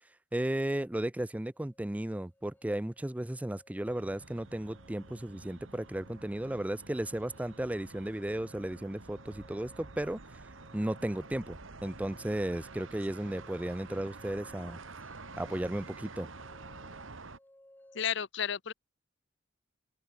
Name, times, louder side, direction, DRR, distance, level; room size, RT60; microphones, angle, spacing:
voice 1, 0.3-10.2 10.7-14.8 15.4-16.3, right 1 dB, 5° right, 0.4 m, -34 dB
sound 1, 1.5-18.0, left 1 dB, 10° left, 2.4 m, -63 dB
sound 2, 3.8-17.4, right 3 dB, 80° right, 1.8 m, -49 dB
voice 2, 17.9-18.7, left 8 dB, 65° left, 0.8 m, -32 dB
open air
head